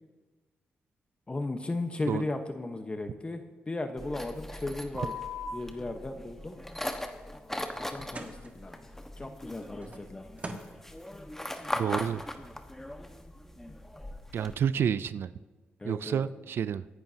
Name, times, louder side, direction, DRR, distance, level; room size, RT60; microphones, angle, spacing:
voice 1, 1.3-5.1 5.5-6.6 7.8-8.9 9.2-10.2 15.8-16.2, left 2 dB, 25° left, 6 dB, 1.1 m, -36 dB
sound 1, 4.0-14.5, left 1 dB, 10° left, 1.3 m, -40 dB
sound 2, 5.0-5.5 7.9-8.5 9.6-10.0 10.4-10.7, left 2 dB, 35° right, 1.6 m, -38 dB
voice 2, 11.7-12.2 14.3-15.3 15.8-16.9, right 8 dB, 70° right, 16 dB, 0.4 m, -29 dB
23.5 x 11.5 x 2.8 m, 1.3 s
cardioid pair, 65°, 4 cm